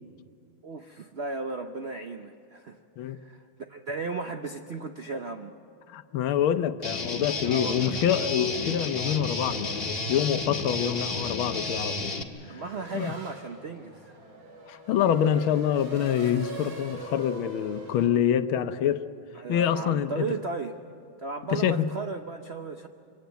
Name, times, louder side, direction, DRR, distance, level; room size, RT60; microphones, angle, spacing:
voice 1, 0.6-2.8 3.0-3.4 3.7-5.5 7.5-8.0 12.5-14.1 19.3-20.8 21.2-22.9, right 4 dB, 65° right, 0.6 m, -35 dB
voice 2, 5.9-12.1 12.5-12.6 12.9-13.1 14.7-19.0 19.5-20.3 21.5-21.9, left 9 dB, 80° left, 1.6 m, -26 dB
Guitar, 6.8-12.2, left 3 dB, 30° left, 1.6 m, -32 dB
Race car auto racing / Accelerating revving vroom, 12.4-18.1, right 2 dB, 90° right, 3.8 m, -43 dB
25.0 x 17.0 x 9.3 m
omnidirectional pair, 2.2 m